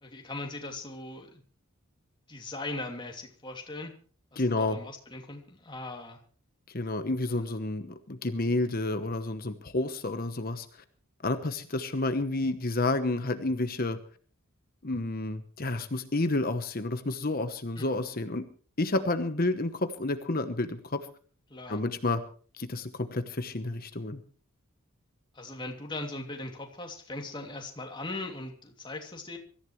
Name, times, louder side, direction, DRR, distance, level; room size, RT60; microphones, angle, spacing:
voice 1, 0.0-1.4 2.3-3.9 4.3-6.2 7.3-7.5 17.8-17.9 21.5-21.8 25.3-29.4, left 2 dB, 20° left, 2 dB, 2.8 m, -39 dB
voice 2, 4.4-4.8 6.7-10.7 11.2-14.0 14.8-18.5 18.8-21.0 21.7-22.2 22.6-24.2, left 2 dB, 45° left, 9 dB, 1.1 m, -30 dB
24.5 x 14.5 x 3.2 m, 0.42 s
head